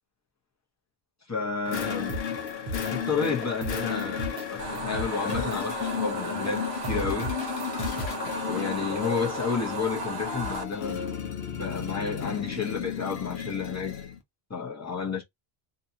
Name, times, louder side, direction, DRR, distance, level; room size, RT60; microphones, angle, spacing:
voice 1, 1.3-2.2 2.9-7.4 8.5-11.0 11.6-14.0 14.5-15.2, left 5 dB, 20° left, 0.7 m, -31 dB
sound 1, 1.7-14.2, left 7 dB, 80° left, 0.9 m, -34 dB
sound 2, 1.7-2.9 3.2-4.5 4.8-5.7 6.5-6.6 6.8-8.2, equal, 50° right, 0.8 m, -35 dB
sound 3, 4.6-10.6, right 2 dB, 80° right, 0.9 m, -35 dB
2.7 x 2.3 x 2.7 m
omnidirectional pair, 1.0 m